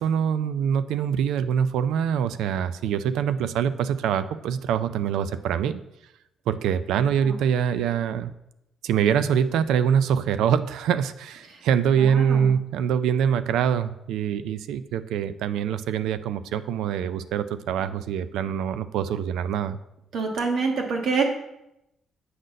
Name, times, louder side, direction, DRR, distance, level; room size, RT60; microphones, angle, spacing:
voice 1, 0.0-5.8 6.5-8.3 8.8-19.8, right 8 dB, 85° right, 13 dB, 0.4 m, -24 dB
voice 2, 12.0-12.5 20.1-21.2, right 4 dB, 65° right, 2 dB, 1.5 m, -26 dB
7.8 x 4.0 x 6.4 m, 0.85 s
cardioid pair, 90°, 0 cm